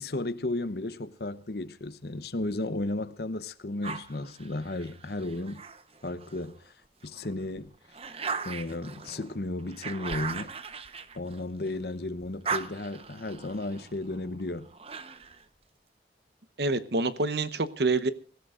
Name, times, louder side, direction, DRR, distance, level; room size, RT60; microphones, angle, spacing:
voice 1, 0.0-5.6 6.0-6.6 7.0-7.7 8.4-10.5 11.1-14.7, left 2 dB, 60° left, 0.9 m, -34 dB
sound 1, 3.8-6.5 7.0-11.8 12.2-15.5, right 5 dB, 35° right, 0.9 m, -39 dB
voice 2, 16.6-18.1, right 3 dB, 65° right, 1.0 m, -27 dB
25.0 x 16.0 x 2.5 m
head